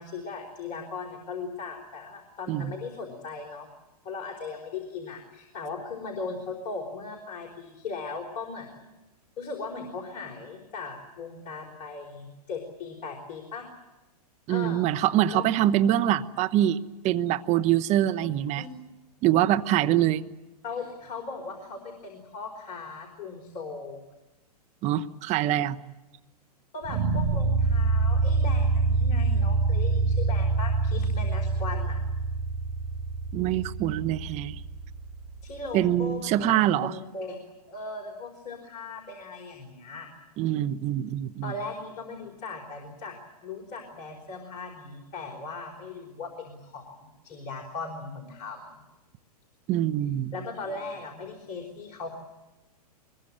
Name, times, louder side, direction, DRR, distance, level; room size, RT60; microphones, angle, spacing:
voice 1, 0.0-3.7 4.0-8.9 9.4-13.7 14.5-14.9 15.3-15.4 18.2-18.7 20.6-24.0 26.7-32.0 35.4-36.5 36.8-37.4 37.7-40.1 41.4-48.7 50.3-52.1, left 4 dB, 35° left, 2 dB, 4.6 m, -38 dB
voice 2, 14.5-16.8 17.0-18.7 19.2-20.2 24.8-25.8 33.3-34.6 35.7-36.9 40.4-41.5 49.7-50.3, right 12 dB, 35° right, 10 dB, 1.2 m, -24 dB
sound 1, 26.8-35.9, right 3 dB, 55° right, 6.7 m, -26 dB
24.0 x 22.0 x 8.8 m, 1.1 s
hypercardioid pair, 115°, 21 cm